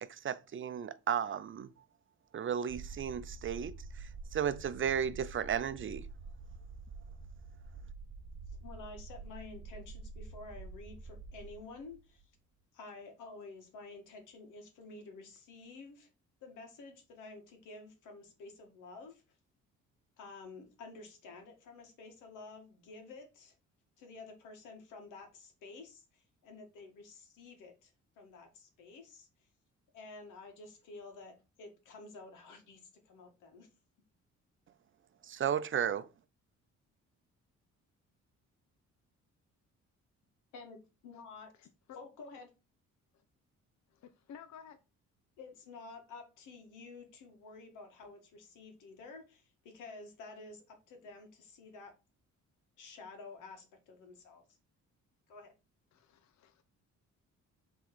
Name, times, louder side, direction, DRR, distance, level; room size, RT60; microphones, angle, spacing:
voice 1, 0.0-1.7 2.3-6.1 35.2-36.1, right 8 dB, 40° right, 0.6 m, -34 dB
sound 1, 2.7-12.2, right 4 dB, 20° right, 1.8 m, -48 dB
voice 2, 8.6-12.2 12.7-16.1 16.4-19.2 20.2-23.5 24.0-29.3 29.9-33.7 40.5-41.5 42.0-42.5 45.4-51.9 52.8-54.4 55.3-55.5, left 3 dB, 90° left, 2.0 m, -51 dB
voice 3, 43.9-44.8 55.9-56.6, left 7 dB, 65° left, 0.8 m, -54 dB
5.8 x 3.8 x 5.4 m
cardioid pair, 90°, 30 cm